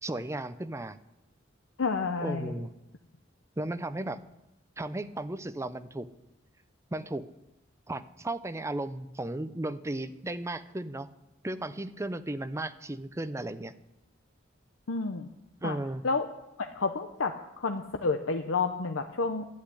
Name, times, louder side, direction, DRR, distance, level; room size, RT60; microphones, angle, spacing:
voice 1, 0.0-1.0 2.2-2.7 3.6-4.2 4.8-6.1 6.9-7.3 7.9-11.1 11.4-13.7 15.6-16.0, right 1 dB, 15° right, 12 dB, 0.6 m, -35 dB
voice 2, 1.8-2.6 14.9-15.3 15.6-15.8 16.0-16.3 16.6-19.5, left 4 dB, 85° left, 6 dB, 0.8 m, -30 dB
12.0 x 8.4 x 9.8 m, 0.90 s
head